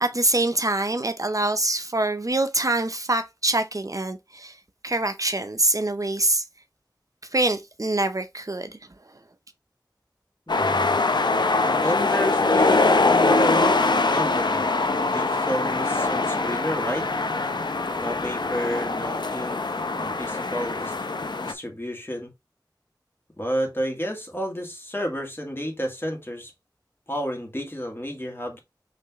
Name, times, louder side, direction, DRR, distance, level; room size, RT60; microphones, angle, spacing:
voice 1, 0.0-4.6 4.8-6.4 7.3-8.8, right 2 dB, 45° right, 0.6 m, -24 dB
sound 1, 10.5-21.5, left 3 dB, 75° left, 0.5 m, -23 dB
voice 2, 10.5-11.0 11.4-14.7 15.1-17.1 18.0-20.9 21.4-22.3 23.4-26.5 27.1-28.6, equal, 30° left, 1.8 m, -31 dB
5.8 x 3.2 x 2.9 m
wide cardioid pair, 45°, 8 cm